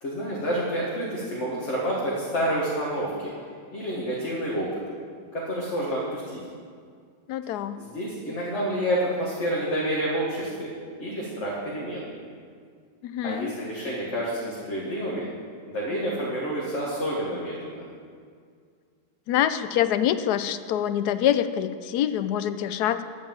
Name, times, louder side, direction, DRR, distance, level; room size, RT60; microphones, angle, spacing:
voice 1, 0.0-3.3 3.7-4.7 5.3-6.4 7.8-10.7 11.0-12.1 13.2-15.3 15.7-17.8, equal, 45° left, -5 dB, 1.9 m, -29 dB
voice 2, 7.3-7.8 13.0-13.5 19.3-23.0, left 10 dB, 75° left, 12 dB, 1.1 m, -25 dB
12.5 x 5.2 x 8.9 m, 2.1 s
omnidirectional pair, 1.8 m